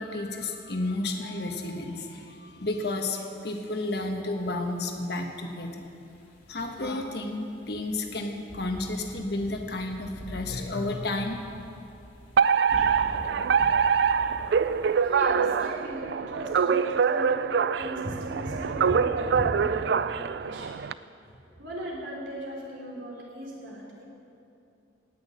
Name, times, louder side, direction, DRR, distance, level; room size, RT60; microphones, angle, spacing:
voice 1, 0.0-5.8 6.5-11.4, left 2 dB, 55° left, 3 dB, 1.3 m, -32 dB
sound 1, 4.3-15.3, equal, 80° left, 3.0 m, -50 dB
Alarm, 12.4-20.9, right 6 dB, 60° right, 0.3 m, -24 dB
sound 2, 12.7-16.0 16.5-16.6, equal, 35° right, 2.6 m, -42 dB
voice 2, 15.0-17.5 17.8-20.1 20.4-20.8 21.3-24.0, right 1 dB, 80° right, -3 dB, 3.4 m, -37 dB
17.5 x 6.3 x 8.6 m, 2.7 s
head